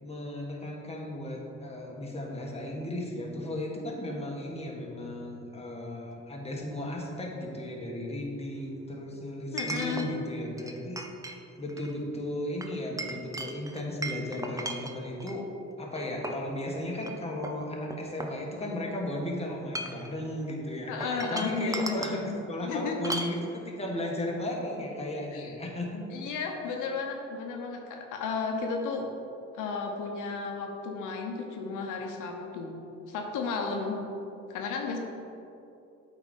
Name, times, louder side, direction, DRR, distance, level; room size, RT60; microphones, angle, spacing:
voice 1, 0.0-11.0 11.6-15.5 15.8-26.0, left 1 dB, 20° left, -1 dB, 1.5 m, -35 dB
Chink clink, 6.1-6.2 9.6-10.1 10.6-11.4 11.7-11.9 12.6-15.4 16.0-16.5 17.0-17.1 17.4-18.9 19.6-20.1 21.0-22.2 23.0-23.4, right 1 dB, 10° right, 0.6 m, -37 dB
voice 2, 9.5-10.1 20.9-22.0 22.6-23.1 25.3-25.5 26.1-29.1 29.5-32.7 33.1-34.0 34.5-35.0, left 4 dB, 90° left, 2 dB, 0.8 m, -33 dB
8.3 x 4.1 x 5.2 m, 2.7 s
cardioid pair, 90°, 30 cm